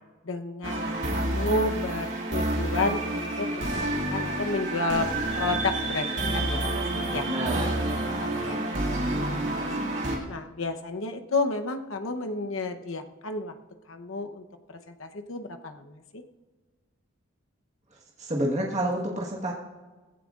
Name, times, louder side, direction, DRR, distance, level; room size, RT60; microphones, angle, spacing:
voice 1, 0.2-3.7 4.1-5.1 5.4-6.1 6.3-6.6 6.9-7.3 7.5-7.7 8.2-8.6 9.4-9.8 10.2-13.5 13.9-16.2, left 2 dB, 80° left, 6 dB, 0.9 m, -31 dB
sound 1, 0.6-10.2, right 1 dB, 60° right, 2.4 m, -29 dB
voice 2, 7.1-8.6 18.2-19.5, right 1 dB, 35° right, -4 dB, 1.5 m, -30 dB
19.0 x 15.5 x 2.5 m, 1.3 s
head